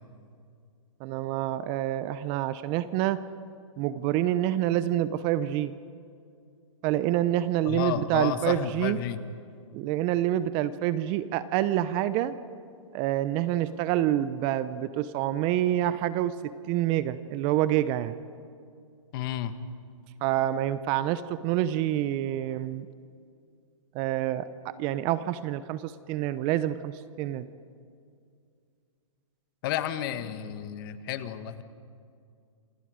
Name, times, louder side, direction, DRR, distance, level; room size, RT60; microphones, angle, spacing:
voice 1, 1.0-3.2 3.8-5.7 6.8-9.0 9.7-12.4 12.9-18.2 20.2-22.9 23.9-27.5, right 13 dB, 30° right, 15 dB, 0.7 m, -27 dB
voice 2, 7.7-9.2 19.1-19.5 29.6-31.6, left 11 dB, 40° left, 11 dB, 1.5 m, -31 dB
27.5 x 26.5 x 5.1 m, 2.3 s
hypercardioid pair, 140°, 17 cm